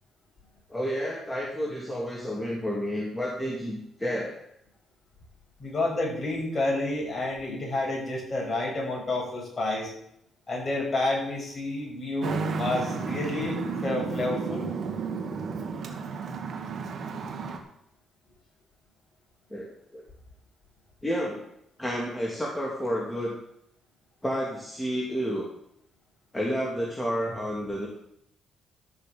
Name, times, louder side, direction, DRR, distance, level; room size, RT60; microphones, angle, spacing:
voice 1, 0.7-4.4 19.5-20.0 21.0-21.4 21.8-23.4 24.2-25.5 26.3-27.9, equal, 10° left, -3 dB, 3.0 m, -30 dB
voice 2, 5.6-9.9 10.5-14.7, left 2 dB, 30° left, -2 dB, 6.5 m, -29 dB
Traffic noise roadway noise, 12.2-17.6, right 5 dB, 60° right, 2.2 m, -32 dB
13.5 x 6.6 x 7.1 m, 0.75 s
cardioid pair, 90°, 0 cm